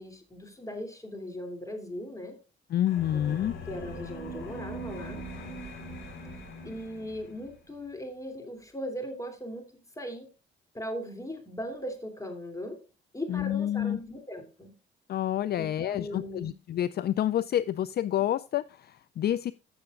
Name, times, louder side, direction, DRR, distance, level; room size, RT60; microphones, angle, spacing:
voice 1, 0.0-2.4 3.1-5.2 6.6-10.3 10.7-12.8 13.1-14.7 15.6-16.5, equal, 15° left, 6 dB, 3.0 m, -39 dB
voice 2, 2.7-3.5 13.3-14.0 15.1-19.5, left 11 dB, 55° left, 16 dB, 0.4 m, -28 dB
sound 1, 2.9-7.5, equal, 75° left, 4.9 m, -41 dB
15.0 x 6.7 x 2.5 m, 0.33 s
cardioid pair, 90°, 20 cm